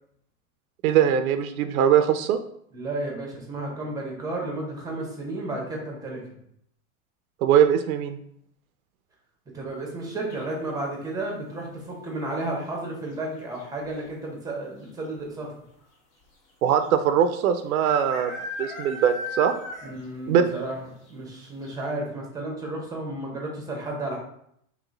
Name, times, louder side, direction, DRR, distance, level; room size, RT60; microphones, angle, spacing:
voice 1, 0.8-2.4 7.4-8.2 16.6-19.5 20.3-20.4, right 9 dB, 85° right, 9 dB, 0.5 m, -21 dB
voice 2, 2.7-6.3 9.5-15.5 19.8-20.8 21.1-24.2, right 2 dB, 10° right, -1 dB, 0.8 m, -32 dB
sound 1, 10.3-10.8 12.6-13.0 13.2-13.3 13.6-14.1 14.9-15.0 15.2-15.3 16.8-16.9 17.8-20.1 20.5-20.6 21.1-21.2 21.6-21.7, left 2 dB, 50° left, 1.5 m, -36 dB
3.0 x 2.9 x 3.8 m, 0.70 s
supercardioid pair, 135°, 42 cm